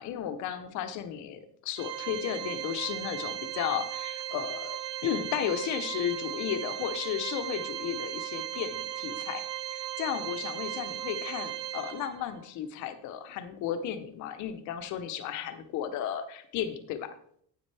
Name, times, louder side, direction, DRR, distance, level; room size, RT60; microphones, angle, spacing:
voice 1, 0.0-9.4 9.7-17.1, left 10 dB, 50° left, 9 dB, 0.9 m, -34 dB
Organ, 1.8-12.4, right 13 dB, 80° right, 0.9 m, -37 dB
9.8 x 8.4 x 3.4 m, 0.65 s
cardioid pair, 175°, 37 cm